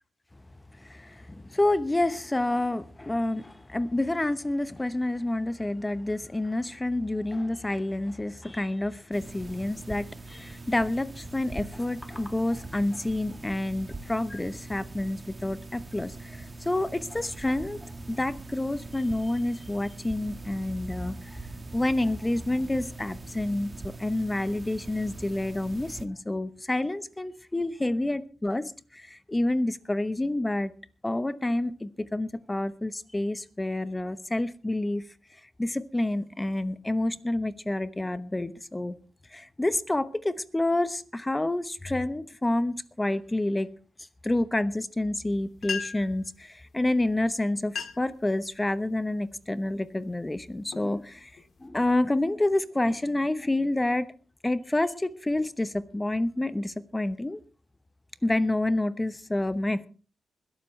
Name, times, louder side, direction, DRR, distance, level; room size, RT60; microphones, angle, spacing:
voice 1, 0.8-21.1 21.7-30.7 31.0-35.0 35.6-38.9 39.3-43.7 44.2-51.3 51.6-54.1 54.4-57.4 58.2-59.9, left 1 dB, 15° left, 13 dB, 1.0 m, -28 dB
sound 1, 9.1-26.1, right 3 dB, 25° right, 1.4 m, -42 dB
sound 2, 45.3-45.4 45.6-46.2 47.1-47.2 47.6-48.2 48.7-49.0 49.6-49.9 50.4-51.7, left 6 dB, 60° left, 1.9 m, -37 dB
21.5 x 12.0 x 3.3 m, 0.37 s
cardioid pair, 100°, 0 cm